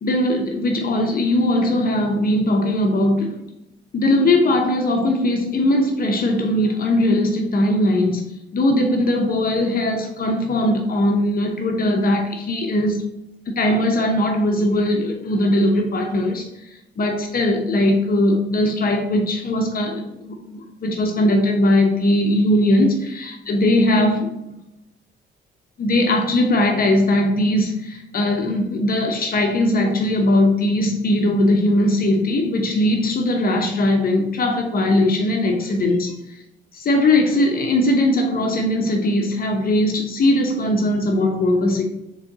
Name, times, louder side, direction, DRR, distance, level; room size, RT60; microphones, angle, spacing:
voice 1, 0.0-3.4 3.9-8.2 8.5-13.0 13.5-16.5 17.0-24.3 25.8-36.1 36.7-41.8, left 1 dB, 50° left, 2 dB, 0.8 m, -19 dB
4.3 x 3.1 x 3.8 m, 0.89 s
cardioid pair, 90°, 20 cm